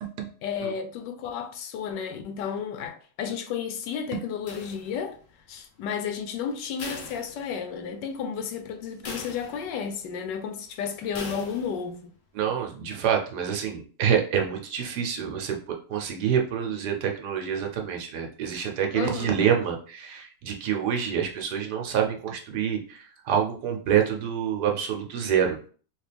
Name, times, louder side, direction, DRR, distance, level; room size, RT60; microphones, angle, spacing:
voice 1, 0.4-5.2 5.5-12.1 18.9-19.4, left 7 dB, 85° left, 1.3 m, -32 dB
sound 1, 4.5-5.3 6.8-7.9 8.3-8.4 9.0-9.9 11.1-11.9, left 4 dB, 60° left, 0.8 m, -40 dB
voice 2, 12.3-15.6 15.9-25.7, right 8 dB, 75° right, 1.2 m, -27 dB
3.2 x 2.9 x 3.3 m
omnidirectional pair, 1.9 m